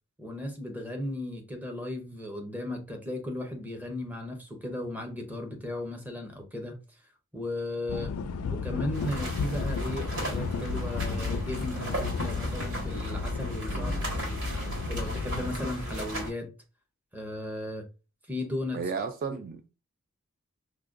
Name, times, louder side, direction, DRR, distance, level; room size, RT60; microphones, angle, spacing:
voice 1, 0.2-6.8 7.3-8.2 8.5-14.4 14.9-16.5 17.1-17.9 18.3-18.8, left 1 dB, 10° right, 0.7 m, -36 dB
sound 1, 7.9-15.6, left 5 dB, 70° left, 0.3 m, -34 dB
sound 2, 8.9-16.3, equal, 75° right, 1.5 m, -34 dB
voice 2, 13.7-14.1 18.7-19.7, right 5 dB, 45° right, 0.3 m, -34 dB
4.7 x 2.2 x 2.4 m
head